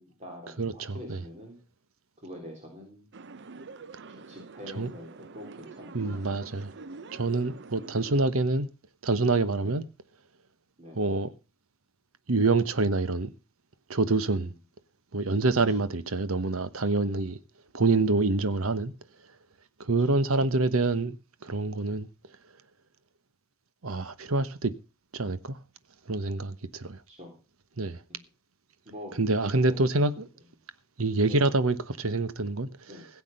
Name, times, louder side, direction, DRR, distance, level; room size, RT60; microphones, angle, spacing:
voice 1, 0.0-1.6 2.2-3.1 4.1-6.5 9.6-9.7 10.8-11.1 14.2-14.5 20.1-20.4 27.1-27.3 28.1-28.2 28.9-29.1 29.5-29.8 31.2-31.5 32.9-33.1, equal, 35° right, 3.7 m, -45 dB
voice 2, 0.6-1.2 4.8-4.9 5.9-6.7 7.1-8.7 9.0-9.8 10.9-11.3 12.3-13.3 13.9-14.5 15.1-17.4 17.7-18.9 19.8-21.2 21.4-22.1 23.8-24.7 25.1-25.6 26.1-27.0 27.8-28.0 29.2-30.3 31.0-32.7, right 3 dB, 80° right, 1.1 m, -26 dB
sound 1, 3.1-8.2, right 3 dB, 55° right, 0.7 m, -46 dB
16.5 x 8.3 x 5.4 m
head